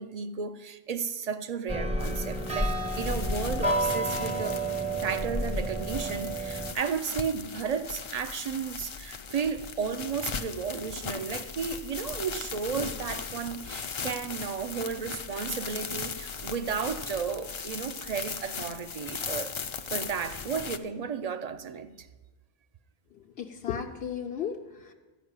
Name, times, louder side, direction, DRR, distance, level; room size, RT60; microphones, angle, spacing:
voice 1, 0.0-4.6 4.9-19.6 19.9-22.1, right 6 dB, 45° right, 0.6 m, -33 dB
sound 1, 1.7-6.7, right 1 dB, 5° right, 0.6 m, -30 dB
sound 2, 2.0-20.8, left 5 dB, 40° left, 0.4 m, -38 dB
voice 2, 23.4-24.9, left 8 dB, 80° left, 1.0 m, -34 dB
13.5 x 5.3 x 8.7 m
omnidirectional pair, 1.0 m